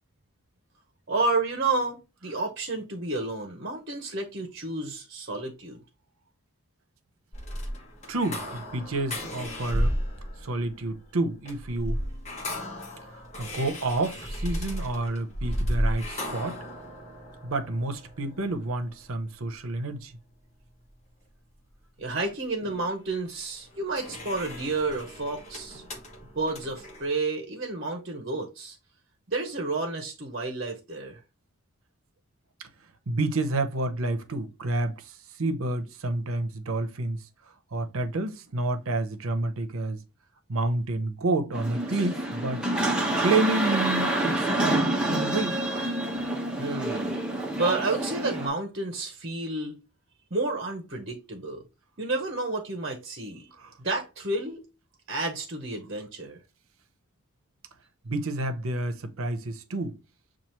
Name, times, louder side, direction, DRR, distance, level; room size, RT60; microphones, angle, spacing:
voice 1, 1.1-5.8 22.0-25.8 26.3-28.8 29.3-31.2 46.6-47.1 47.6-49.8 50.3-51.6 52.0-53.5 53.8-54.6 55.1-56.4, right 3 dB, 45° right, 0.9 m, -30 dB
sound 1, 7.3-19.6 23.4-27.1, equal, 30° left, 1.1 m, -34 dB
voice 2, 8.1-10.0 10.4-12.0 13.4-16.6 17.4-20.1 22.6-22.8 32.6-32.7 33.1-37.2 37.7-40.0 40.5-42.6 43.2-45.6 53.6-53.7 58.0-60.0, right 2 dB, 75° right, 0.8 m, -29 dB
sound 2, 41.5-48.5, right 1 dB, 5° right, 0.9 m, -27 dB
7.2 x 2.5 x 3.0 m
head